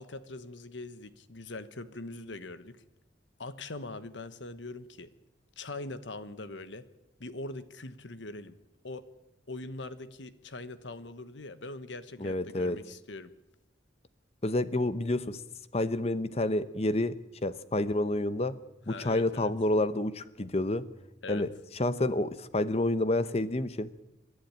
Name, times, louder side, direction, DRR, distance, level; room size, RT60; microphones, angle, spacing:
voice 1, 0.0-2.8 3.4-5.1 5.6-6.9 7.2-8.6 8.8-9.0 9.5-13.3 18.9-19.5 21.2-21.4, left 2 dB, 90° left, 13 dB, 1.3 m, -42 dB
voice 2, 12.2-12.8 14.4-15.4 15.7-18.6 18.9-20.9 21.3-21.5 21.8-23.9, left 1 dB, 35° left, 14 dB, 0.8 m, -29 dB
27.0 x 11.5 x 8.9 m, 0.96 s
head